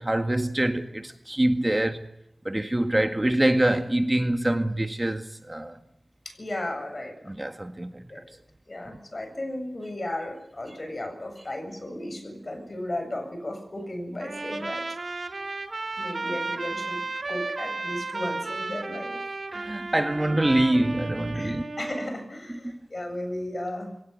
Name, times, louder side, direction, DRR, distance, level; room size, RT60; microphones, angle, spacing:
voice 1, 0.0-2.0 2.5-5.8 7.3-8.0 19.5-21.6, right 1 dB, 25° right, 1.8 m, -25 dB
voice 2, 6.2-7.1 8.1-8.2 8.7-14.8 16.0-19.2 20.2-20.3 21.3-23.9, left 1 dB, 50° left, 7.7 m, -35 dB
Trumpet, 14.2-22.1, right 3 dB, 70° right, 2.3 m, -34 dB
23.0 x 17.5 x 9.7 m
wide cardioid pair, 50°, 0 cm